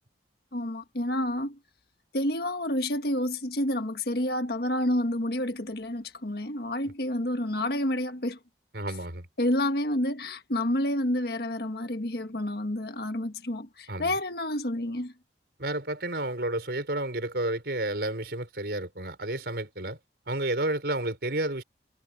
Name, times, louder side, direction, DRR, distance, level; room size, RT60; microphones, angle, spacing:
voice 1, 0.5-1.6 2.1-8.4 9.4-15.1, left 1 dB, 60° left, 1.6 m, -29 dB
voice 2, 8.7-9.3 13.9-14.2 15.6-20.0 20.3-21.6, right 1 dB, 60° right, 4.9 m, -31 dB
head